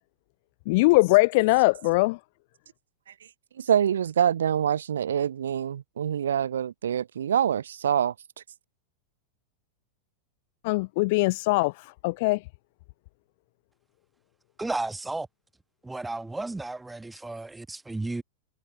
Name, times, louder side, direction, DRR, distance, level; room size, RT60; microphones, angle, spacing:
voice 1, 0.7-2.2 10.6-12.4, left 24 dB, 50° left, 0.5 m, -21 dB
voice 2, 3.6-8.1, right 9 dB, 65° right, 0.8 m, -25 dB
voice 3, 14.6-15.3 15.8-18.2, right 2 dB, 5° right, 1.4 m, -33 dB
figure-of-eight pair, 90°, 0 cm